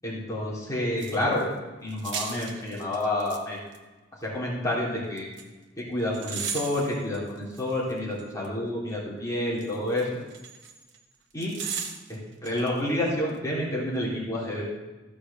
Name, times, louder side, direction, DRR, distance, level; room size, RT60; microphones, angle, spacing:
voice 1, 0.0-1.5 1.8-3.6 4.2-5.3 5.8-10.1 11.3-11.5 12.1-14.6, left 1 dB, 20° left, -6 dB, 3.7 m, -29 dB
sound 1, 1.0-1.4 1.9-3.4 3.7-3.8 5.2-5.4 6.1-8.5 9.6-11.0 11.4-12.7 12.9-13.0, right 6 dB, 85° right, 1.3 m, -36 dB
15.5 x 6.2 x 7.0 m, 1.2 s
head